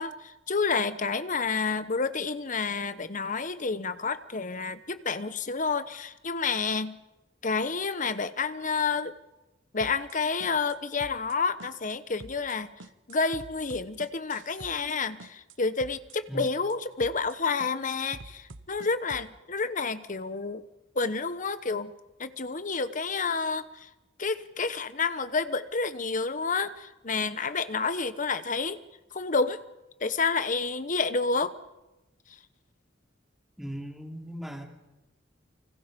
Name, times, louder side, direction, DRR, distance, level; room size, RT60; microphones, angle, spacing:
voice 1, 0.0-7.0 7.4-9.1 9.7-12.7 13.1-20.6 20.9-21.9 22.2-23.9 24.2-28.8 29.1-29.6 30.0-31.5, left 4 dB, 45° left, 12 dB, 1.1 m, -29 dB
sound 1, 9.8-10.2 10.4-10.8 11.0-11.4 11.6-12.0 12.2-12.6 12.8-15.0 15.2-15.6 15.8-16.2 16.4-16.8 17.0-17.4 17.6-19.3, right 2 dB, 85° right, 1.2 m, -46 dB
voice 2, 33.6-34.6, equal, ahead, 0 dB, 3.1 m, -38 dB
29.5 x 25.0 x 5.3 m, 0.99 s
head